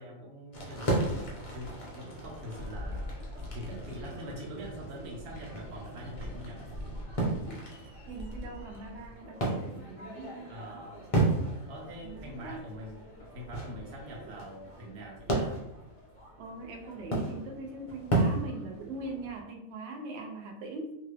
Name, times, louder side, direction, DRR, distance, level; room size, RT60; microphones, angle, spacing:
voice 1, 0.0-3.1 3.5-6.6 10.5-11.0 11.7-15.5, equal, 80° right, -1 dB, 1.3 m, -44 dB
sound 1, 0.5-19.4, right 2 dB, 50° left, 0.4 m, -35 dB
voice 2, 8.1-10.8 12.0-12.6 16.4-20.9, right 3 dB, 65° right, 2 dB, 0.7 m, -41 dB
2.8 x 2.4 x 3.2 m, 0.84 s
omnidirectional pair, 1.6 m